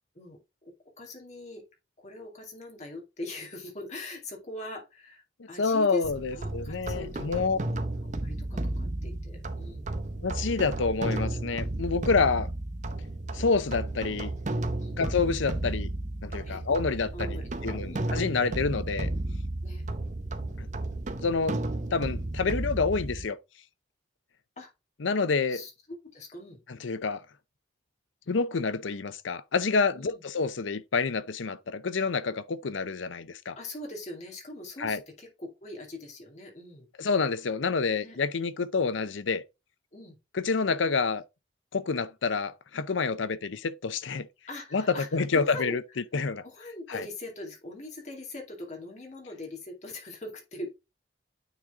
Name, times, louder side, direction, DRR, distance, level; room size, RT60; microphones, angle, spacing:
voice 1, 0.1-1.6 2.0-6.0 6.3-9.9 14.8-15.0 16.4-16.6 17.1-18.1 19.6-19.9 24.6-24.7 25.5-26.6 29.9-30.2 33.5-36.9 38.0-38.2 39.9-40.2 44.5-45.8 46.4-50.7, left 1 dB, 35° left, 2.3 m, -42 dB
voice 2, 5.4-7.6 10.2-12.5 13.3-14.3 15.0-15.9 16.2-19.1 20.6-20.7 21.2-21.6 21.9-23.4 25.0-25.6 26.7-27.2 28.3-33.6 34.8-35.0 37.0-39.4 40.3-41.2 41.7-44.3 44.7-45.8 46.1-46.4 46.9-47.1, left 4 dB, 80° left, 0.6 m, -28 dB
sound 1, 6.0-23.2, right 2 dB, 40° right, 0.7 m, -33 dB
9.1 x 4.0 x 3.5 m
head